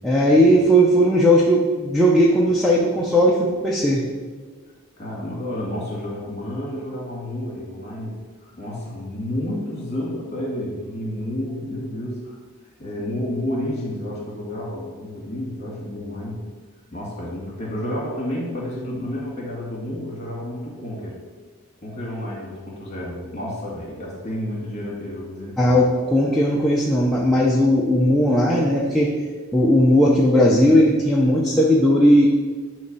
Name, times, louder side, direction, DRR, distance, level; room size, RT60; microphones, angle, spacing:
voice 1, 0.0-4.1 25.6-29.1 29.5-32.3, equal, ahead, -4 dB, 0.6 m, -17 dB
voice 2, 5.0-8.2 8.4-12.4 12.8-16.4 16.9-21.2 21.8-25.8, left 1 dB, 30° left, -3 dB, 2.2 m, -30 dB
9.1 x 3.2 x 5.4 m, 1.5 s
head